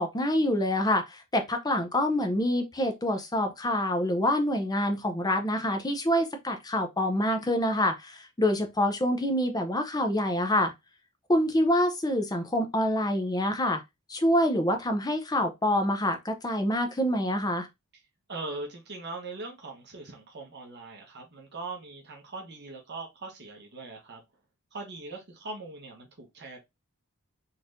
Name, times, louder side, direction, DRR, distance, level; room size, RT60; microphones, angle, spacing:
voice 1, 0.0-10.7 11.3-13.8 14.1-17.7, left 1 dB, 15° left, 0.6 m, -26 dB
voice 2, 18.3-24.2 24.7-26.6, right 3 dB, 50° right, 1.2 m, -41 dB
4.1 x 3.2 x 2.6 m
head